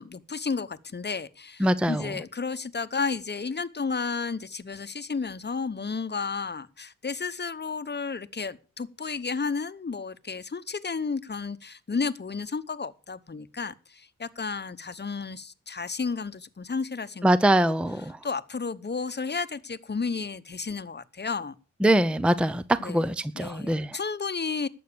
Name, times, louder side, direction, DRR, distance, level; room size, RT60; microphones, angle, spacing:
voice 1, 0.0-17.3 18.2-21.5 22.8-23.0 23.3-24.7, left 4 dB, 35° left, 0.9 m, -32 dB
voice 2, 1.6-2.1 17.2-18.2 21.8-24.0, right 1 dB, 5° right, 0.6 m, -23 dB
12.0 x 7.8 x 6.8 m
cardioid pair, 65°, 30 cm